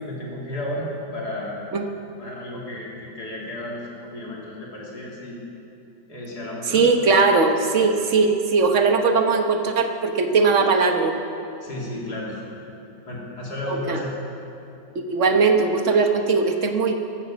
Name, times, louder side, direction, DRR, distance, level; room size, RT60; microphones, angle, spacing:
voice 1, 0.0-1.6 2.2-5.4 6.1-6.9 11.6-12.4 13.1-14.1, left 1 dB, 65° left, -4 dB, 3.6 m, -33 dB
voice 2, 6.7-11.2 13.7-14.0 14.9-17.0, right 4 dB, 50° right, 5 dB, 1.3 m, -19 dB
14.5 x 12.5 x 7.3 m, 2.7 s
omnidirectional pair, 1.8 m